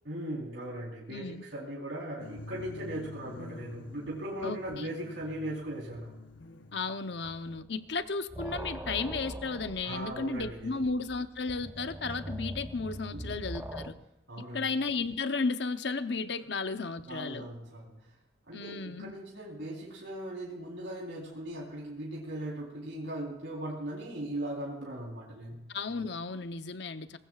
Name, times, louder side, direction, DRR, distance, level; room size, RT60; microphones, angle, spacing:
voice 1, 0.0-6.1 9.8-10.9 13.1-13.4 14.3-14.7 17.1-18.0 18.5-25.6, right 1 dB, 85° right, -3 dB, 3.9 m, -39 dB
voice 2, 1.1-1.4 4.4-4.9 6.7-13.9 14.5-17.5 18.5-19.1 25.7-27.2, left 4 dB, 65° left, 10 dB, 0.8 m, -34 dB
sound 1, 2.2-7.6, left 2 dB, 85° left, 1.0 m, -47 dB
sound 2, 7.2-7.7 8.0-13.9, right 1 dB, 10° right, 0.9 m, -42 dB
22.5 x 19.0 x 2.5 m, 0.86 s
head